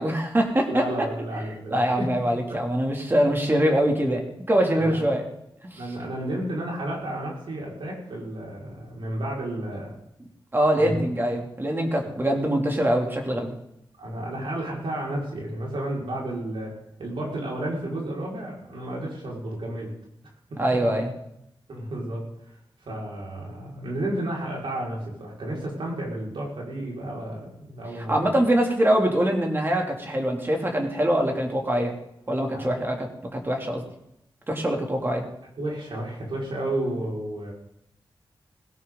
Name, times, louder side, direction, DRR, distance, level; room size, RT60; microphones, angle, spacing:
voice 1, 0.0-1.1 1.7-5.2 5.7-5.8 10.5-13.5 20.6-21.1 28.1-31.9 32.3-33.8 34.5-35.2, right 1 dB, 25° right, 1 dB, 2.9 m, -23 dB
voice 2, 0.7-2.1 4.8-5.1 5.7-10.0 10.8-11.0 13.0-13.1 14.0-16.7 17.0-19.9 20.5-20.6 21.7-22.6 22.8-28.2 32.5-32.7 35.6-37.5, right 1 dB, 80° right, -3 dB, 5.4 m, -32 dB
17.5 x 16.5 x 4.0 m, 0.81 s
wide cardioid pair, 100°, 9 cm